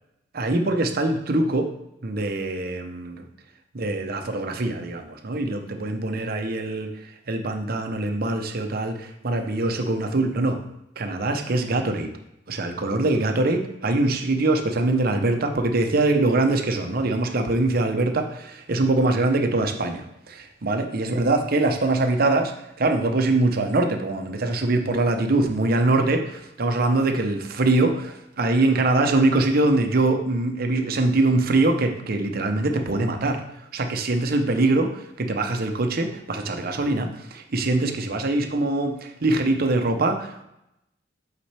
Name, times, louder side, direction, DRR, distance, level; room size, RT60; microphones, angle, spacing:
voice 1, 0.3-1.7 2.0-3.3 3.7-6.9 7.3-10.6 11.0-12.1 12.5-22.5 22.8-33.4 33.7-40.4, right 2 dB, 55° right, 5 dB, 0.8 m, -23 dB
8.2 x 4.1 x 3.4 m, 0.85 s
head